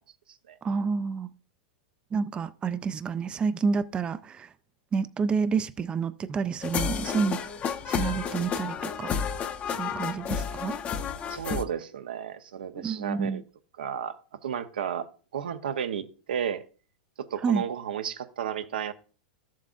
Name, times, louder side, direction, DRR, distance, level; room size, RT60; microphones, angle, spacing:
voice 1, 0.6-1.3 2.1-4.5 4.9-7.5 7.9-9.1 9.7-10.8 12.8-13.4 17.4-17.6, right 5 dB, 20° right, 0.4 m, -29 dB
sound 1, 6.6-11.6, left 7 dB, 30° left, 0.7 m, -31 dB
voice 2, 11.3-13.4 13.8-14.2 14.4-16.6 17.3-18.9, right 8 dB, 85° right, 0.7 m, -33 dB
13.0 x 7.4 x 2.5 m
hypercardioid pair, 115°, 5 cm